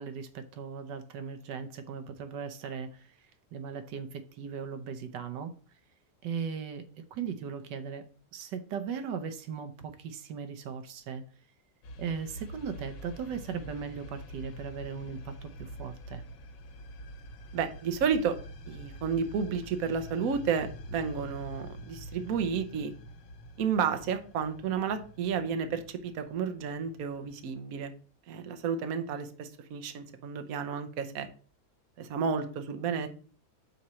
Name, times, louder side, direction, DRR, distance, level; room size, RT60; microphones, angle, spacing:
voice 1, 0.0-3.1 3.5-5.5 6.2-6.9 7.1-8.1 8.3-11.2 12.0-16.2, right 6 dB, 80° right, 9 dB, 1.4 m, -38 dB
sound 1, 11.8-27.6, equal, 85° left, 1.5 m, -46 dB
voice 2, 17.5-18.4 18.7-22.9 23.6-27.9 28.3-31.3 32.0-33.1, right 6 dB, 60° right, 8 dB, 1.2 m, -31 dB
5.8 x 4.3 x 6.2 m, 0.40 s
omnidirectional pair, 1.9 m